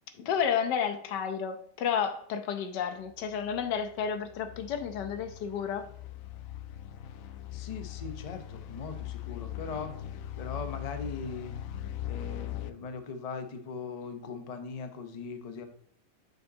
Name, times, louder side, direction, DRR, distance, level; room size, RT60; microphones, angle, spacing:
voice 1, 0.2-5.9, left 7 dB, 90° left, 1.4 m, -31 dB
sound 1, 3.0-12.7, left 12 dB, 70° left, 0.8 m, -41 dB
voice 2, 7.5-11.6 12.1-15.7, left 4 dB, 45° left, 0.5 m, -40 dB
6.9 x 6.6 x 2.7 m
omnidirectional pair, 1.8 m